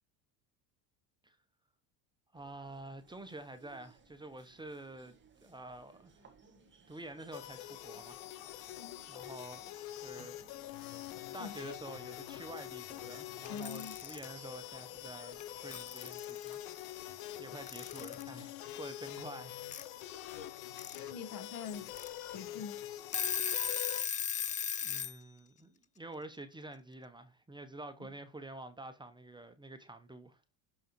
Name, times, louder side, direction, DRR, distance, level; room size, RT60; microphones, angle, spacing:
voice 1, 2.3-5.1 5.4-6.1 6.9-8.2 8.5-8.7 9.1-9.7 10.0-10.5 11.3-16.6 17.4-19.6 24.8-30.4, right 2 dB, 10° right, 1.0 m, -48 dB
sound 1, 2.3-16.0, right 5 dB, 25° right, 2.2 m, -64 dB
sound 2, 7.3-24.0, left 13 dB, 85° left, 1.1 m, -45 dB
voice 2, 8.8-9.1 11.4-11.9 13.5-14.0 20.4-20.5 20.9-21.9 22.3-22.8 28.0-28.1, left 6 dB, 55° left, 1.4 m, -45 dB
Alarm / Clock, 13.5-14.3 15.4-15.5 15.7-16.5 17.7-18.3 19.7-19.8 20.6-21.0 21.4-21.5 21.9-22.1 22.6-22.7 23.0-25.1, left 9 dB, 20° left, 0.4 m, -36 dB
6.4 x 5.5 x 4.6 m
supercardioid pair, 100°, 41 cm